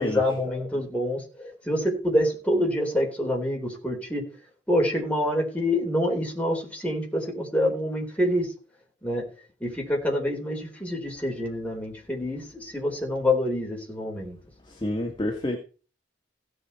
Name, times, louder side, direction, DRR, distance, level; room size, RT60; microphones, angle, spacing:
voice 1, 0.0-4.2 4.7-8.5 9.0-9.2 9.6-14.4, left 1 dB, 5° left, 4.2 m, -26 dB
voice 2, 14.7-15.6, left 1 dB, 25° left, 1.8 m, -28 dB
16.0 x 8.0 x 4.3 m
head